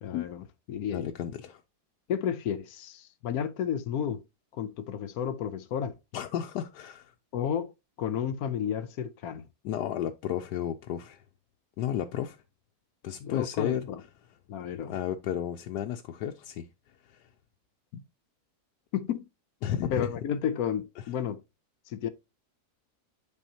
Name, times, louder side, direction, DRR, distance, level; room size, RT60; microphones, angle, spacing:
voice 1, 0.0-1.1 2.1-4.2 4.5-6.0 7.3-7.7 8.0-9.5 13.2-14.0 14.5-15.0 17.9-18.0 18.9-19.3 19.9-21.4 21.9-22.1, left 8 dB, 70° left, 1.1 m, -32 dB
voice 2, 0.9-1.6 6.1-7.1 9.6-11.2 11.8-12.4 13.0-13.8 14.9-16.7 17.0-17.2 19.6-20.1, left 10 dB, 85° left, 1.2 m, -32 dB
10.5 x 4.2 x 2.8 m
omnidirectional pair, 1.7 m